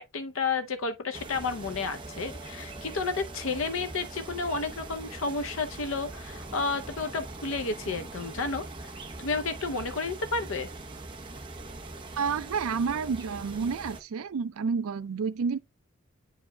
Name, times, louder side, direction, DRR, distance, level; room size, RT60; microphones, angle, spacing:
voice 1, 0.0-8.9 9.2-10.7, left 4 dB, 70° left, 0.6 m, -31 dB
sound 1, 1.1-14.0, right 2 dB, 20° right, 0.7 m, -42 dB
voice 2, 12.2-15.6, right 5 dB, 80° right, 0.4 m, -30 dB
9.6 x 4.8 x 2.2 m
head